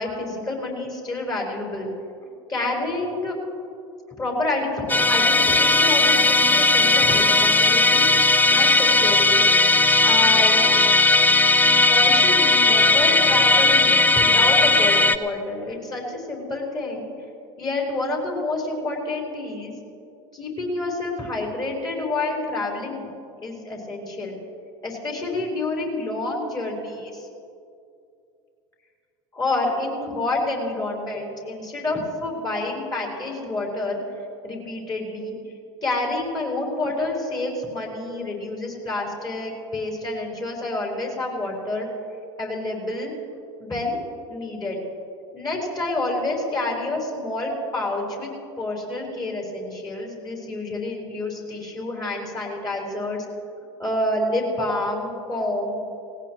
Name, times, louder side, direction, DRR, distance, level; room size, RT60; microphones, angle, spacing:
voice 1, 0.0-1.9 2.2-3.4 4.2-10.8 11.9-17.1 17.6-19.7 20.3-23.1 23.4-24.4 24.8-27.3 29.3-34.0 34.4-35.4 35.8-41.9 42.4-43.1 43.6-44.0 44.3-44.8 45.3-48.3 48.6-53.2 53.8-55.8, left 2 dB, 25° left, -1 dB, 4.7 m, -28 dB
Musical instrument, 4.9-15.2, left 3 dB, 10° left, 0.5 m, -17 dB
18.5 x 18.0 x 3.1 m, 2.5 s
hypercardioid pair, 80°, 15 cm